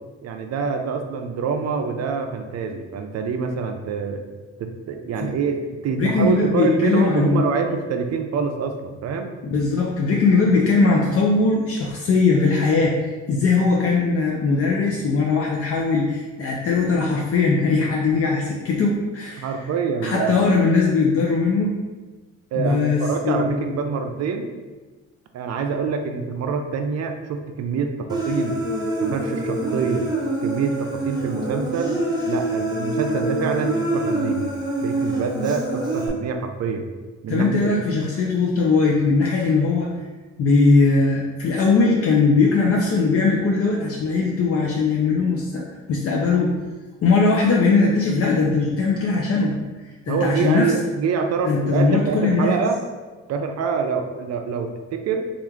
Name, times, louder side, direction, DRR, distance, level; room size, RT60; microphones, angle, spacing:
voice 1, 0.2-4.2 4.6-9.3 19.4-20.4 22.5-24.5 25.3-28.6 29.0-30.1 30.4-32.0 32.2-34.5 34.8-36.9 37.2-37.7 50.1-52.8 53.3-55.3, right 5 dB, 60° right, 5 dB, 0.5 m, -25 dB
voice 2, 6.0-7.5 9.5-13.0 13.3-19.5 20.0-21.7 22.5-23.7 37.3-39.9 40.4-46.5 47.0-49.5 50.1-50.7 51.4-52.5, left 4 dB, 50° left, -2 dB, 0.5 m, -20 dB
Human voice, 28.1-36.1, right 2 dB, 15° right, 0.8 m, -25 dB
3.1 x 2.4 x 3.4 m, 1.3 s
cardioid pair, 90°, 30 cm